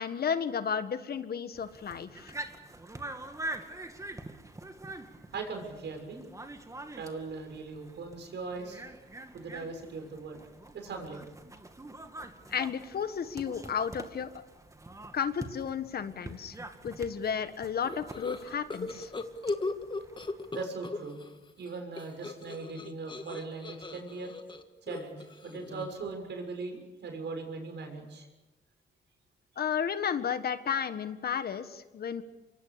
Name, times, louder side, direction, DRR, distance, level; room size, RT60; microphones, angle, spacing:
voice 1, 0.0-2.4 12.5-14.4 15.1-16.6 16.8-19.1 29.6-32.2, left 7 dB, 50° left, 10 dB, 1.6 m, -33 dB
sound 1, 1.5-20.5, right 2 dB, 15° right, 2.2 m, -45 dB
voice 2, 5.3-6.2 6.9-8.8 9.3-10.4 10.7-11.2 20.5-21.2 21.6-24.3 24.8-28.3, right 4 dB, 60° right, 5 dB, 6.6 m, -39 dB
sound 2, 17.8-21.3 21.6-26.1, left 3 dB, 25° left, 1.8 m, -38 dB
26.0 x 23.5 x 6.9 m, 1.1 s
cardioid pair, 90°, 20 cm